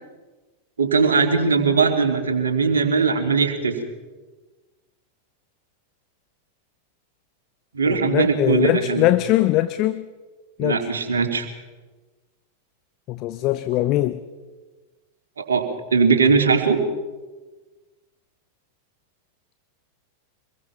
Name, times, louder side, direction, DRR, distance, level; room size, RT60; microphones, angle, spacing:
voice 1, 0.8-3.8 7.7-9.0 10.6-11.5 15.4-16.8, right 5 dB, 70° right, 5 dB, 2.8 m, -20 dB
voice 2, 7.9-10.1 10.6-10.9 13.1-14.2, left 15 dB, 40° left, 13 dB, 0.8 m, -21 dB
25.5 x 21.5 x 5.8 m, 1.2 s
figure-of-eight pair, 90°, 0 cm